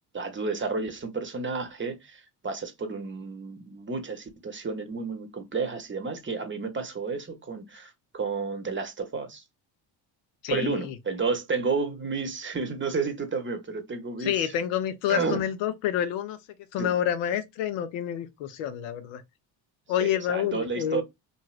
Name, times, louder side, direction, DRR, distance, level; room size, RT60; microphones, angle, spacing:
voice 1, 0.1-9.4 10.5-14.5 15.1-15.4 16.8-17.0 20.0-21.0, right 4 dB, 25° right, 0.8 m, -31 dB
voice 2, 10.4-10.9 14.2-16.4 16.7-19.2 19.9-21.0, left 10 dB, 85° left, 0.6 m, -28 dB
3.0 x 2.6 x 2.3 m
supercardioid pair, 80°, 45 cm